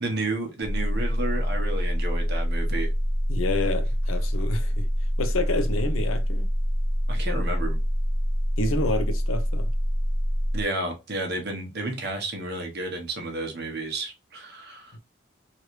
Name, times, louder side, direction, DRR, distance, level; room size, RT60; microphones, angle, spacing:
voice 1, 0.0-2.9 7.1-7.8 10.5-14.9, right 2 dB, 50° right, 0.9 m, -31 dB
sound 1, 0.6-10.6, equal, 10° right, 0.4 m, -25 dB
voice 2, 3.3-4.8 5.2-6.5 8.6-9.7 14.9-15.0, left 2 dB, 80° left, 0.6 m, -28 dB
3.1 x 2.5 x 3.0 m
head